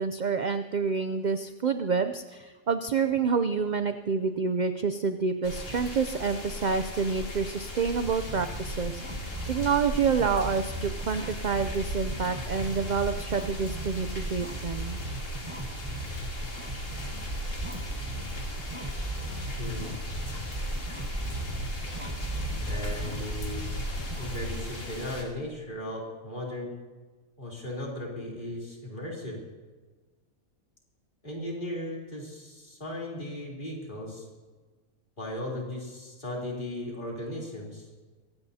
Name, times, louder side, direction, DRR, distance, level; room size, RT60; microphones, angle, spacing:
voice 1, 0.0-15.0, right 5 dB, 60° right, 9 dB, 0.4 m, -28 dB
sound 1, 5.4-25.2, left 1 dB, 60° left, 2.8 m, -38 dB
sound 2, 7.9-24.3, right 2 dB, 25° right, 1.1 m, -36 dB
voice 2, 19.6-19.9 22.6-23.6 24.2-26.7 27.4-29.4 31.2-34.3 35.2-37.9, left 1 dB, 35° left, -3 dB, 3.5 m, -36 dB
23.5 x 17.0 x 2.8 m, 1.4 s
omnidirectional pair, 1.5 m